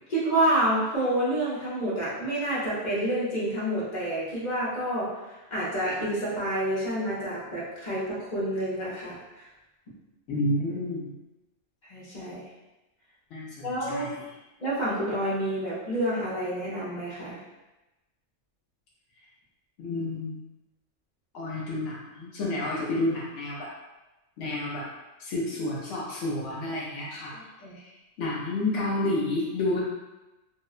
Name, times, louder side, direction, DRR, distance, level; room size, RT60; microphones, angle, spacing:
voice 1, 0.1-5.1 5.5-9.2 11.9-12.4 13.6-14.1 14.6-17.4 27.3-27.8, right 1 dB, 45° left, -8 dB, 0.7 m, -28 dB
voice 2, 10.3-11.1 13.3-14.1 19.8-20.4 21.3-23.7 24.4-24.8 25.2-27.3 28.2-29.8, left 2 dB, 75° left, -6 dB, 0.9 m, -30 dB
2.8 x 2.1 x 2.3 m, 1.0 s
omnidirectional pair, 1.3 m